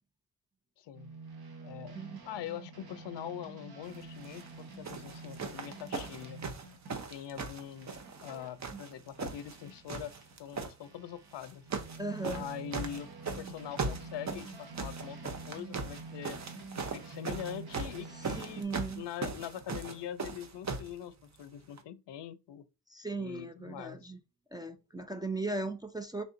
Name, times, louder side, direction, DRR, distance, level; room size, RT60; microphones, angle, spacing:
voice 1, 0.8-1.1 1.6-6.4 6.9-7.9 8.2-10.1 10.4-11.7 12.3-16.4 16.7-18.7 19.0-22.6 23.2-24.1, left 10 dB, 75° left, 0.5 m, -43 dB
sound 1, 0.9-10.4 10.8-18.6, right 3 dB, 60° right, 1.0 m, -48 dB
sound 2, 4.2-4.5 4.8-8.3 8.6-9.6 9.9-10.7 11.4-12.0 12.2-20.9 21.8-21.9, right 4 dB, 40° right, 0.7 m, -38 dB
voice 2, 12.0-12.4 18.4-19.0 22.9-24.2 24.5-26.2, right 2 dB, 10° right, 0.3 m, -37 dB
3.5 x 2.5 x 3.7 m
cardioid pair, 100°, 43 cm